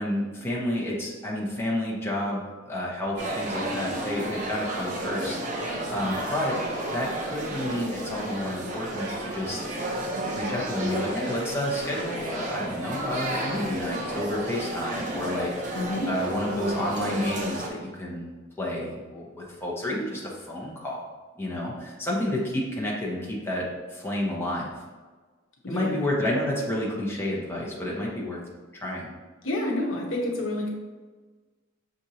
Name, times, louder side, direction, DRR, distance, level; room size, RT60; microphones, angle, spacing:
voice 1, 0.0-6.6 6.8-9.6 10.3-15.8 16.1-21.0 21.4-24.8 25.7-28.4 28.8-29.1, left 1 dB, 10° left, -4 dB, 0.9 m, -30 dB
sound 1, 3.2-17.7, right 1 dB, 40° right, 0.6 m, -32 dB
voice 2, 15.7-16.1 25.6-26.1 29.4-30.7, left 1 dB, 70° left, -1 dB, 0.9 m, -29 dB
6.2 x 2.6 x 2.8 m, 1.4 s
head